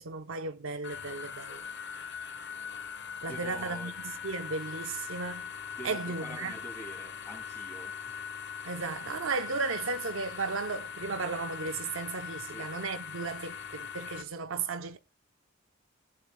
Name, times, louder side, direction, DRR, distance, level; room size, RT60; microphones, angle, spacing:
voice 1, 0.0-1.6 3.2-5.5 5.8-6.5 8.6-15.0, right 4 dB, 70° right, 0.7 m, -35 dB
sound 1, 0.8-14.2, left 7 dB, 60° left, 1.0 m, -41 dB
voice 2, 3.2-3.9 5.8-8.3 12.4-12.7, right 1 dB, 15° left, 2.6 m, -46 dB
18.0 x 10.5 x 2.2 m
head